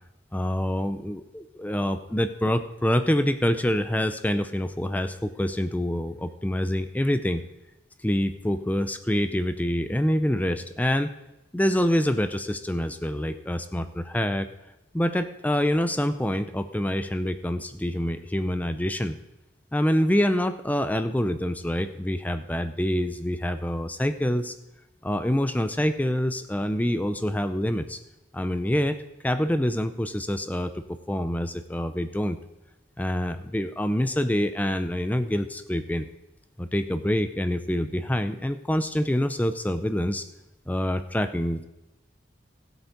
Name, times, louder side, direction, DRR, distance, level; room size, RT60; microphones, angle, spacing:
voice 1, 0.3-7.4 8.0-11.1 11.5-14.5 14.9-19.2 19.7-24.5 25.0-28.0 28.3-29.0 29.2-32.4 33.0-36.1 36.6-40.3 40.7-41.6, equal, 10° left, 10 dB, 0.5 m, -26 dB
16.0 x 8.0 x 5.2 m, 0.96 s
head